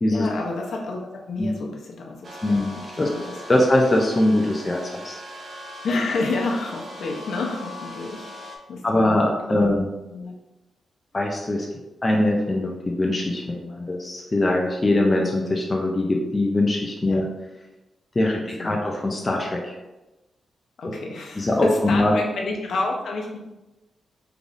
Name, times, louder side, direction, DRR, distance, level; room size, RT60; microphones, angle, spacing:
voice 1, 0.1-2.6 3.0-3.6 5.8-8.4 8.7-9.8 10.1-10.3 17.1-17.2 18.2-18.8 20.8-23.4, left 3 dB, 60° left, -1 dB, 0.7 m, -30 dB
sound 1, 2.2-8.6, left 1 dB, 45° right, 0.5 m, -40 dB
voice 2, 2.4-2.7 3.0-3.1 3.5-5.2 8.8-9.9 11.1-11.7 12.0-17.2 18.2-19.8 21.4-22.1, left 1 dB, 20° left, 0 dB, 0.4 m, -22 dB
3.7 x 3.4 x 2.5 m, 1.0 s
wide cardioid pair, 170°, 0 cm